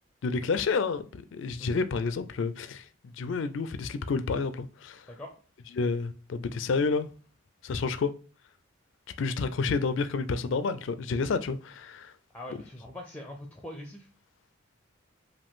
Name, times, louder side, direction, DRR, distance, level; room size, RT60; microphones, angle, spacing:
voice 1, 0.2-2.8 3.2-5.0 5.7-7.1 7.6-8.1 9.2-12.1, left 4 dB, 70° left, 0.4 m, -29 dB
voice 2, 12.3-14.1, left 1 dB, 5° left, 0.5 m, -42 dB
5.0 x 2.6 x 3.6 m
head